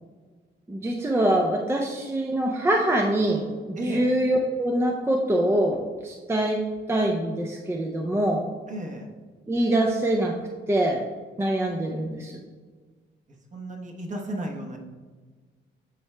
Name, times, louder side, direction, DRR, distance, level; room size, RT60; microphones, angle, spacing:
voice 1, 0.7-6.6 6.9-8.5 9.5-10.3 10.7-11.0 11.4-12.3, right 1 dB, 10° right, 1 dB, 0.5 m, -24 dB
voice 2, 3.7-4.1 8.7-9.1 13.5-14.8, right 1 dB, 40° right, 1 dB, 1.1 m, -33 dB
9.3 x 4.6 x 2.2 m, 1.5 s
cardioid pair, 90°, 20 cm